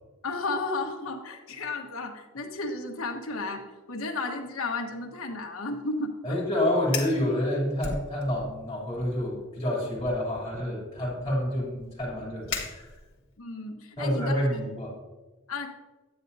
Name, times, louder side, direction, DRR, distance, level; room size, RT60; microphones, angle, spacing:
voice 1, 0.2-6.4 13.4-14.6 15.5-15.7, left 3 dB, 85° left, 2 dB, 1.3 m, -33 dB
voice 2, 6.2-12.9 14.0-14.9, left 1 dB, 15° left, -5 dB, 3.0 m, -28 dB
Fire, 6.8-7.2 7.8-8.6 8.9-9.3 10.0-13.3, left 4 dB, 70° left, 1.6 m, -38 dB
9.4 x 9.3 x 2.7 m, 1.2 s
head